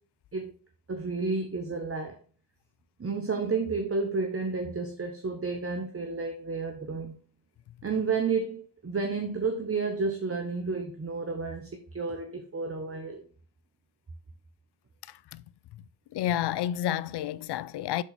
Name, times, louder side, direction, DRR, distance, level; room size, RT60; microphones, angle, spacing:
voice 1, 0.9-2.2 3.0-7.1 7.8-13.2, right 4 dB, 30° right, 1.0 m, -31 dB
voice 2, 15.1-15.4 16.1-18.0, left 11 dB, 55° left, 0.5 m, -30 dB
6.2 x 4.0 x 4.0 m
supercardioid pair, 40°, 48 cm